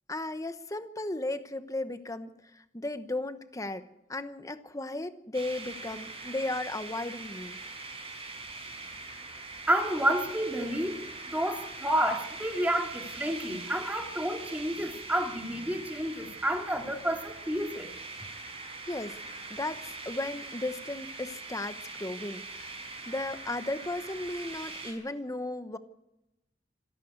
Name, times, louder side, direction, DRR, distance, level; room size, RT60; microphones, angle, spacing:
voice 1, 0.1-7.6 18.9-19.2 19.5-22.8 23.1-25.8, left 2 dB, 20° left, 10 dB, 1.0 m, -35 dB
sound 1, 5.3-24.9, right 3 dB, 35° right, 5.4 m, -42 dB
voice 2, 9.7-11.0 11.3-17.9, right 1 dB, 10° right, 3 dB, 2.6 m, -30 dB
27.0 x 11.0 x 9.5 m, 0.90 s
head